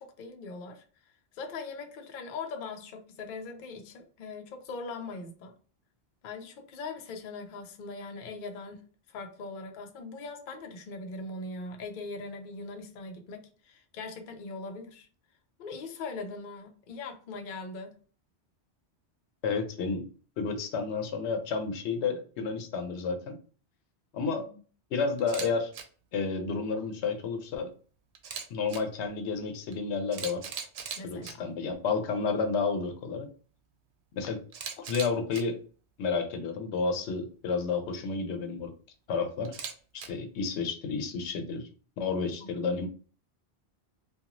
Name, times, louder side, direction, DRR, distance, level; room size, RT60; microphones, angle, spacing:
voice 1, 0.0-5.5 6.2-15.1 15.6-18.0 24.4-24.6 31.0-31.5 42.4-42.6, left 3 dB, 60° left, 0.6 m, -41 dB
voice 2, 19.4-20.1 20.4-23.4 24.1-24.5 24.9-25.7 26.1-27.7 28.5-30.4 31.0-33.3 34.2-34.4 34.8-35.6 36.0-38.7 39.1-39.5 40.1-41.7 42.0-42.9, left 4 dB, 85° left, 0.9 m, -31 dB
Camera, 25.2-25.5 25.7-25.8 28.1-28.8 29.7-29.8 30.1-31.3 34.5-35.4 39.4-40.1, right 7 dB, 80° right, 0.9 m, -38 dB
2.9 x 2.3 x 2.5 m
omnidirectional pair, 1.1 m